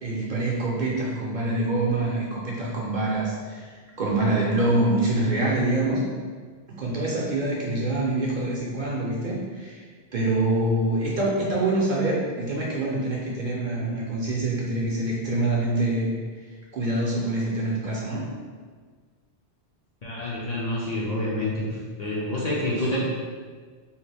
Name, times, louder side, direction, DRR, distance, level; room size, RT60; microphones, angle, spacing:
voice 1, 0.0-3.7 4.0-6.0 6.7-9.8 10.1-16.1 16.7-18.3, right 2 dB, 55° right, -4 dB, 0.6 m, -25 dB
voice 2, 20.0-21.6 22.0-23.0, left 1 dB, 50° left, -6 dB, 0.5 m, -27 dB
2.8 x 2.4 x 3.3 m, 1.5 s
omnidirectional pair, 1.1 m